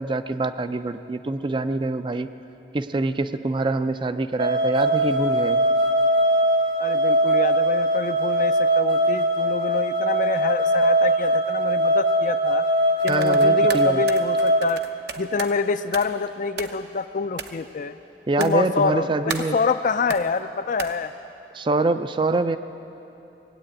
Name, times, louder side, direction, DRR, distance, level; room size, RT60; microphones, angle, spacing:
voice 1, 0.0-2.3 2.7-5.6 13.1-14.0 18.3-19.6 21.5-22.6, right 2 dB, 30° right, 10 dB, 0.4 m, -25 dB
sound 1, 4.4-14.6, right 1 dB, 85° right, 1.5 m, -21 dB
voice 2, 6.8-12.6 13.0-14.8 15.2-18.0 18.4-21.1, left 4 dB, 50° left, 11 dB, 0.4 m, -26 dB
sound 2, 13.0-15.6 15.9-16.2 16.6-17.0 17.4-17.6 18.4-18.8 19.3-19.6 20.1-20.4 20.8-20.9, right 5 dB, 65° right, 0.8 m, -34 dB
19.0 x 8.5 x 8.7 m, 2.9 s
head